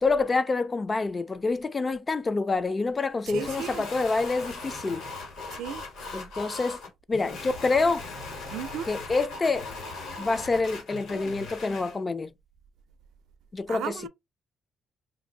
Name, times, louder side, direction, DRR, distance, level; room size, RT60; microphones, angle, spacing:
voice 1, 0.0-5.0 6.1-6.8 7.1-8.0 8.9-9.7 10.2-12.3 13.5-14.1, left 3 dB, 25° left, 0.3 m, -27 dB
sound 1, 3.3-12.0, left 3 dB, 80° left, 1.4 m, -39 dB
voice 2, 3.3-3.8 5.5-5.8 8.5-8.9 13.7-14.1, right 9 dB, 85° right, 0.5 m, -35 dB
2.6 x 2.5 x 3.8 m
cardioid pair, 130°, 0 cm